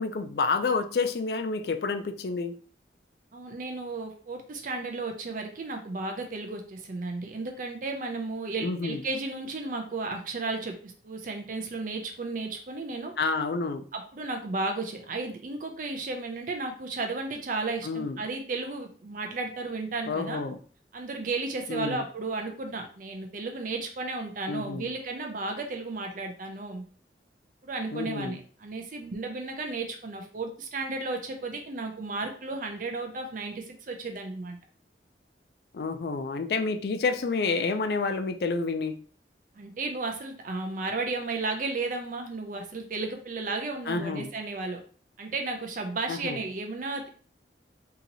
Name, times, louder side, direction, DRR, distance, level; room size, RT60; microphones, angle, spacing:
voice 1, 0.0-2.5 8.6-9.0 13.2-13.9 17.8-18.2 20.1-20.6 21.7-22.0 24.5-24.9 27.9-28.4 35.7-39.0 43.9-44.3 46.1-46.4, left 4 dB, 60° left, 8 dB, 0.4 m, -29 dB
voice 2, 3.3-13.1 13.9-20.4 20.9-26.8 27.6-34.6 39.6-44.8 45.2-47.1, right 3 dB, 50° right, 4 dB, 0.5 m, -34 dB
2.8 x 2.7 x 3.9 m, 0.43 s
head